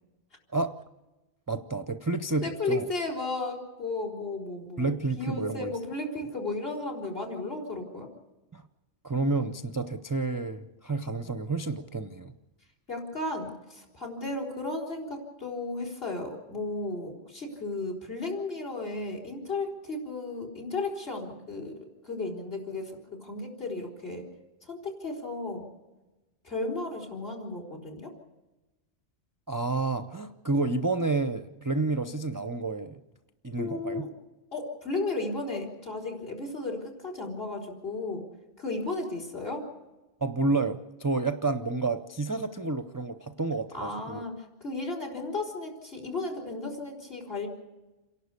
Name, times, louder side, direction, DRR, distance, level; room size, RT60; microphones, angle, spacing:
voice 1, 1.5-2.9 4.8-5.7 8.5-8.6 9.0-12.3 29.5-33.0 33.4-34.1 40.2-44.2, right 3 dB, 20° right, 9 dB, 0.6 m, -30 dB
voice 2, 2.4-8.1 12.9-21.7 22.0-24.2 24.6-25.7 26.4-28.1 33.6-34.1 34.5-38.3 38.6-39.7 43.7-47.5, left 2 dB, 50° left, 3 dB, 4.6 m, -34 dB
28.0 x 11.5 x 8.3 m, 1.1 s
omnidirectional pair, 1.3 m